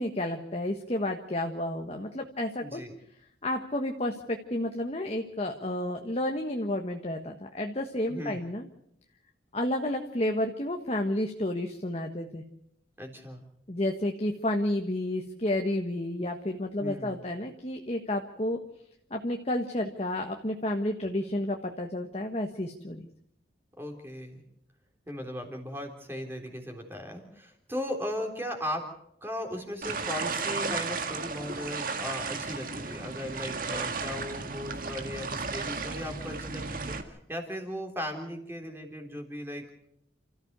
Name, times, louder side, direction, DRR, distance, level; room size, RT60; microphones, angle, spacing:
voice 1, 0.0-2.8 3.4-8.6 9.5-12.4 13.7-18.6 19.1-23.0, left 1 dB, 35° left, 4 dB, 1.4 m, -31 dB
voice 2, 2.6-2.9 8.1-8.4 13.0-13.4 16.8-17.2 23.8-24.4 25.1-28.9 29.2-39.7, left 1 dB, 10° right, 3 dB, 3.6 m, -37 dB
sound 1, 29.8-37.0, right 4 dB, 45° right, 1.9 m, -34 dB
29.5 x 14.0 x 6.8 m, 0.75 s
head